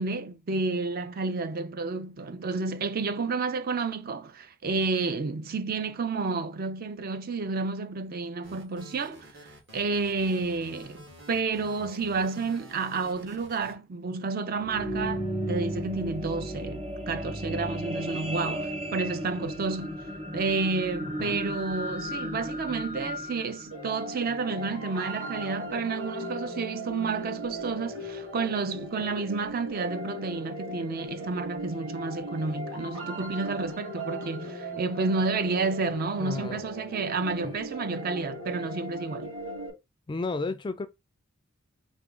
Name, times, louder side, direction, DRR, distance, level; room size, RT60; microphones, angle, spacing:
voice 1, 0.0-9.3 9.7-20.0 20.3-39.3, right 4 dB, 45° right, 0.4 m, -30 dB
sound 1, 8.4-13.7, equal, 60° right, 1.9 m, -49 dB
sound 2, 14.5-24.9 25.5-25.6, equal, 30° right, 0.9 m, -35 dB
sound 3, 23.7-39.7, equal, 80° right, 2.1 m, -38 dB
voice 2, 36.2-36.6 37.4-37.5 40.1-40.9, left 3 dB, 20° left, 0.3 m, -32 dB
3.6 x 2.9 x 3.7 m
head